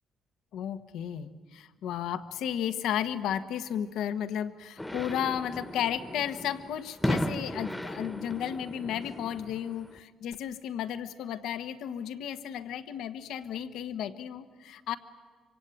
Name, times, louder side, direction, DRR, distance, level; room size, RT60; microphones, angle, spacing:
voice 1, 0.5-15.0, left 9 dB, 85° left, 10 dB, 1.3 m, -33 dB
sound 1, 4.8-10.0, left 1 dB, 10° left, 1.3 m, -35 dB
25.5 x 25.0 x 9.3 m, 1.5 s
cardioid pair, 90°, 0 cm